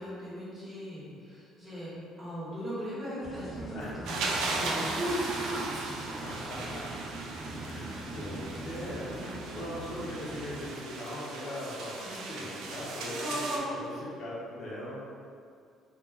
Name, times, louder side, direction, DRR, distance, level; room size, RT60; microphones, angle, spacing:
voice 1, 0.0-6.2 9.5-9.7 13.2-13.9, equal, 15° right, -11 dB, 1.2 m, -37 dB
sound 1, 3.2-10.7, right 2 dB, 5° left, 0.9 m, -42 dB
voice 2, 3.7-4.1 6.2-6.8 7.6-13.5 13.8-15.0, left 1 dB, 50° left, -7 dB, 0.7 m, -40 dB
sound 2, 4.0-13.6, right 3 dB, 75° right, 0.3 m, -37 dB
2.4 x 2.2 x 3.4 m, 2.3 s
cardioid pair, 135°, 0 cm